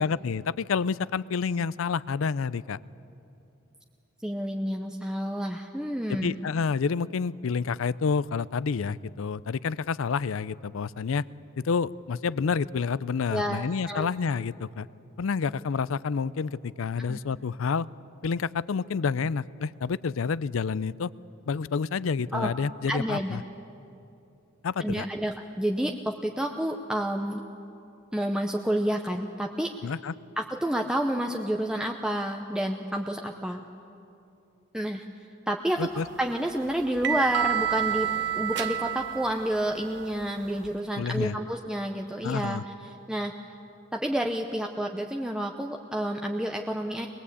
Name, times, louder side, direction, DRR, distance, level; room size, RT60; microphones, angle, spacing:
voice 1, 0.0-2.8 6.1-11.2 11.6-14.9 15.2-17.9 18.2-21.1 21.5-23.4 24.6-25.1 29.8-30.1 35.8-36.1 41.0-41.4 42.2-42.6, left 5 dB, 70° left, 19 dB, 0.4 m, -29 dB
voice 2, 4.2-6.5 13.3-14.1 17.0-17.2 22.3-22.5 22.9-23.4 24.8-27.4 28.1-29.9 30.4-33.7 34.7-35.0 35.5-35.9 36.2-38.1 38.3-43.3 43.9-47.1, right 1 dB, 5° right, 2 dB, 0.7 m, -29 dB
sound 1, 35.9-40.8, right 9 dB, 55° right, 0.9 m, -31 dB
22.0 x 21.0 x 8.4 m, 2.8 s
head